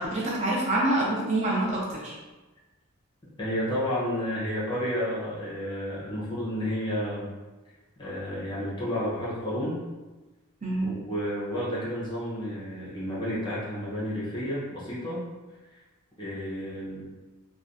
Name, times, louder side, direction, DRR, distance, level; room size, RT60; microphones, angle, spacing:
voice 1, 0.0-2.1 10.6-10.9, right 1 dB, 30° right, -5 dB, 0.5 m, -26 dB
voice 2, 3.2-7.3 8.0-9.8 10.8-15.2 15.7-15.8 16.2-17.0, equal, 20° left, -7 dB, 0.9 m, -31 dB
3.3 x 2.3 x 2.6 m, 1.2 s
head